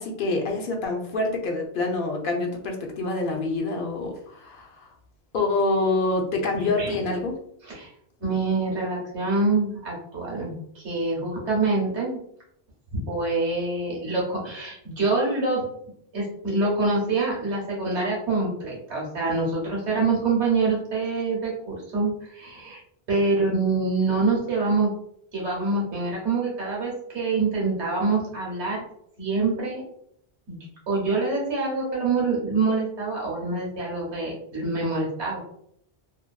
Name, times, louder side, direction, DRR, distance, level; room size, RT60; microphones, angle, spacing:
voice 1, 0.0-4.9 5.3-7.4, left 2 dB, 60° left, 1 dB, 0.7 m, -26 dB
voice 2, 8.2-12.2 12.9-15.6 16.1-22.8 23.1-24.9 25.3-28.8 29.2-29.8 30.5-30.6 30.9-35.4, right 3 dB, 85° right, -4 dB, 1.3 m, -25 dB
2.7 x 2.5 x 2.2 m, 0.71 s
omnidirectional pair, 1.1 m